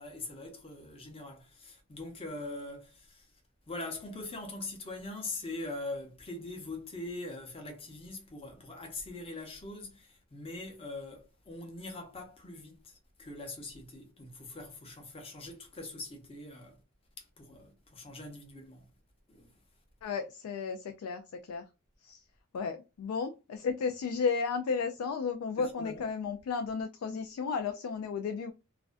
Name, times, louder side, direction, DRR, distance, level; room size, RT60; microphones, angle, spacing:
voice 1, 0.0-3.3 3.7-16.8 17.2-18.9 19.3-19.5 25.6-26.0, left 2 dB, 25° left, 0.7 m, -42 dB
voice 2, 20.0-21.7 22.0-22.2 22.5-28.5, left 5 dB, 85° left, 0.3 m, -33 dB
2.4 x 2.1 x 2.4 m
head